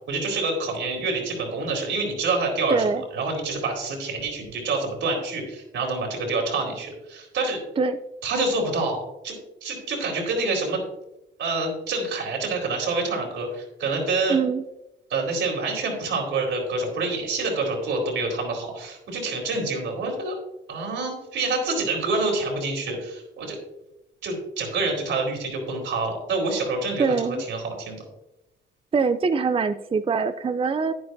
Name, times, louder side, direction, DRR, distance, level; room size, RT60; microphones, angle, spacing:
voice 1, 0.1-2.8 3.1-7.6 8.2-9.0 9.2-9.3 9.6-10.8 11.4-14.4 15.1-20.3 20.7-23.6 24.2-28.0, right 3 dB, 75° right, 1 dB, 3.9 m, -27 dB
voice 2, 2.7-3.0 7.8-8.0 14.3-14.6 27.0-27.4 28.9-30.9, right 5 dB, 30° right, 10 dB, 0.5 m, -23 dB
11.0 x 10.0 x 2.7 m, 0.91 s
cardioid pair, 90°, 20 cm